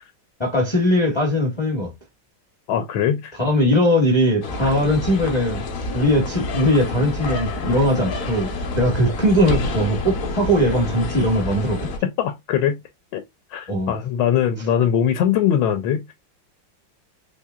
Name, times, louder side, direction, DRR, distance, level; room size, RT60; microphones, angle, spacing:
voice 1, 0.4-1.9 3.4-5.6 5.9-11.9 13.7-13.9, equal, 25° left, 0.6 m, -20 dB
voice 2, 2.7-3.4 4.6-4.7 12.0-12.8 13.1-13.2 13.5-16.0, left 9 dB, 85° left, 1.4 m, -21 dB
sound 1, 4.4-12.0, left 2 dB, 60° left, 0.9 m, -28 dB
4.5 x 2.8 x 2.3 m
omnidirectional pair, 2.2 m